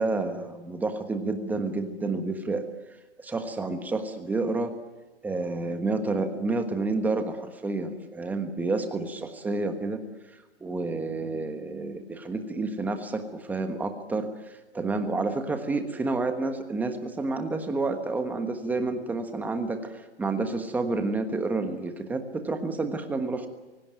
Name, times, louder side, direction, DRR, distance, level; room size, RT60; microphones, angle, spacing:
voice 1, 0.0-2.7 3.2-4.7 5.2-10.0 10.6-23.5, right 3 dB, 5° right, 7 dB, 1.4 m, -29 dB
24.5 x 17.5 x 9.3 m, 1.1 s
hypercardioid pair, 155°, 33 cm